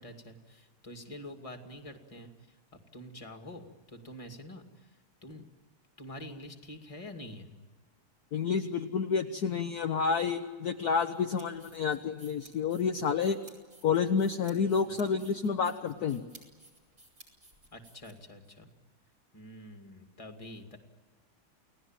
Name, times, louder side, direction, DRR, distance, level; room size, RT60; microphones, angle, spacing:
voice 1, 0.0-2.6 2.9-4.9 5.2-5.4 6.0-7.5 14.9-15.0 17.7-18.7 19.3-20.8, left 1 dB, 15° left, 4 dB, 2.3 m, -46 dB
voice 2, 8.3-13.4 13.8-16.2, left 6 dB, 55° left, 6 dB, 1.4 m, -29 dB
sound 1, 11.1-18.5, right 2 dB, 45° right, 6.0 m, -57 dB
29.5 x 18.5 x 9.0 m, 1.5 s
omnidirectional pair, 2.4 m